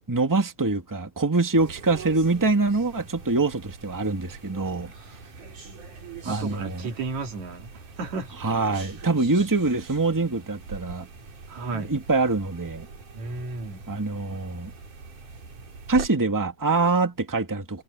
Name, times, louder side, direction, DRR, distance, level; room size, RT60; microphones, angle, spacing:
voice 1, 0.1-4.9 6.2-6.9 8.4-11.1 11.7-12.9 13.9-14.7 15.9-17.8, right 3 dB, 10° right, 1.7 m, -24 dB
sound 1, 1.5-16.1, right 4 dB, 90° right, 6.4 m, -43 dB
voice 2, 6.2-7.7 8.0-8.3 11.5-11.9 13.1-13.8, right 3 dB, 65° right, 3.8 m, -33 dB
omnidirectional pair, 3.5 m